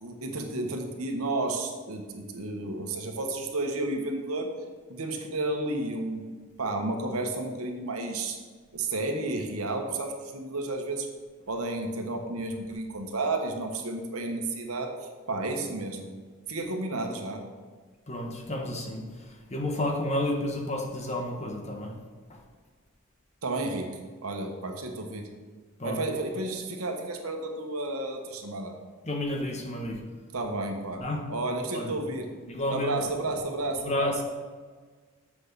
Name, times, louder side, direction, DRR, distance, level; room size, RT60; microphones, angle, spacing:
voice 1, 0.0-4.5 4.9-6.3 6.6-8.4 8.7-11.1 11.5-16.1 16.5-17.5 23.4-25.3 25.8-28.7 30.3-32.3 32.7-34.2, right 2 dB, 85° right, 3 dB, 1.4 m, -32 dB
voice 2, 18.1-21.9 22.3-22.4 25.8-26.0 29.0-30.0 31.0-31.2 31.7-31.9 32.5-33.0 33.7-34.2, left 1 dB, 30° left, 1 dB, 1.3 m, -31 dB
7.5 x 6.2 x 6.8 m, 1.4 s
head